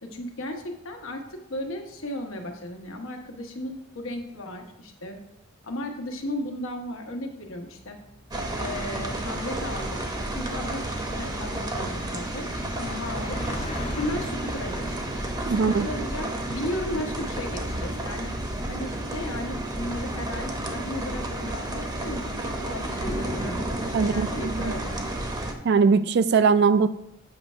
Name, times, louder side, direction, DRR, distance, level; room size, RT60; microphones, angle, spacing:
voice 1, 0.0-5.2 5.6-8.0 8.6-10.0 10.3-12.5 12.8-13.4 13.9-15.0 15.4-18.3 18.7-25.0, left 1 dB, 85° left, 4 dB, 1.0 m, -35 dB
sound 1, 7.3-15.8, left 2 dB, 30° left, 0.6 m, -42 dB
sound 2, 8.3-25.5, right 1 dB, 20° right, 0.7 m, -31 dB
voice 2, 15.5-15.9 23.9-24.7 25.6-26.9, right 5 dB, 55° right, 13 dB, 0.4 m, -21 dB
7.8 x 3.2 x 5.4 m, 0.79 s
head